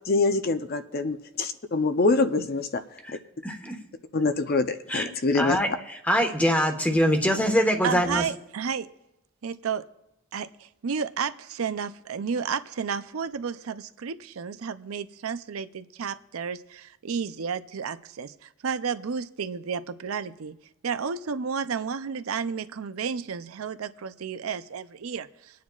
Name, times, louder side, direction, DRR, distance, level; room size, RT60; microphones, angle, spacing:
voice 1, 0.1-2.8 4.1-5.6, left 3 dB, 45° left, 8 dB, 0.6 m, -25 dB
voice 2, 5.4-8.2, equal, 5° left, 4 dB, 1.2 m, -23 dB
voice 3, 7.8-8.9 9.4-9.9 10.3-20.6 20.8-25.6, right 6 dB, 80° right, 12 dB, 0.5 m, -32 dB
26.0 x 9.3 x 2.4 m, 0.92 s
head